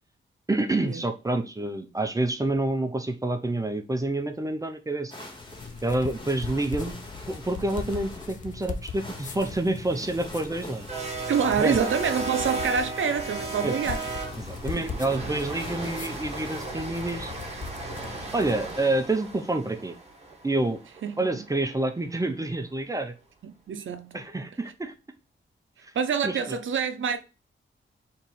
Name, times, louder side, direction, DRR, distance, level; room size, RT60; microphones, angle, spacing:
voice 1, 0.5-5.1 5.8-7.0 7.3-10.9 11.2-11.3 11.6-11.8 13.6-13.8 14.4-17.3 18.3-19.9 20.4-20.8 21.2-23.1 24.1-24.9 26.2-26.6, right 2 dB, 15° right, 0.5 m, -28 dB
sound 1, 5.1-16.6, left 1 dB, 25° left, 1.0 m, -45 dB
sound 2, 5.3-18.8, left 5 dB, 40° left, 0.4 m, -39 dB
sound 3, 9.6-21.8, right 3 dB, 30° right, 0.9 m, -36 dB
voice 2, 11.3-14.0 14.8-14.9 21.0-21.3 23.4-24.2 25.9-27.2, right 7 dB, 75° right, 0.6 m, -27 dB
4.1 x 3.0 x 3.8 m
wide cardioid pair, 165°, 21 cm